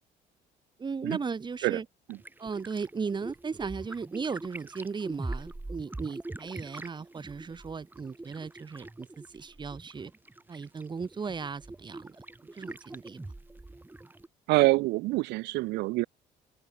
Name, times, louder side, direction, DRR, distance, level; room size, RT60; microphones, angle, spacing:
voice 1, 0.8-1.9 2.4-10.1 10.5-12.2 12.5-13.2, right 5 dB, 25° right, 2.1 m, -36 dB
sound 1, 2.1-14.3, right 2 dB, 10° right, 2.2 m, -43 dB
voice 2, 14.5-16.0, right 21 dB, 90° right, 1.5 m, -25 dB
open air
cardioid pair, 110°, 17 cm